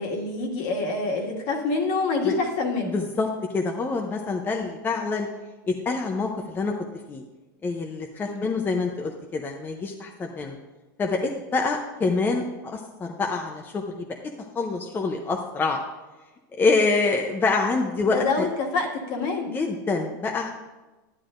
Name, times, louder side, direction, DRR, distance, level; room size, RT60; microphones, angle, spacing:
voice 1, 0.0-3.0 8.2-8.5 18.1-19.6, left 3 dB, 55° left, 1 dB, 2.0 m, -26 dB
voice 2, 2.9-5.3 5.7-6.7 7.1-7.2 7.6-10.6 11.0-14.1 14.5-15.8 16.5-18.5 19.5-20.5, left 3 dB, 20° left, 2 dB, 0.7 m, -26 dB
11.0 x 9.9 x 2.6 m, 1.2 s
supercardioid pair, 130°, 11 cm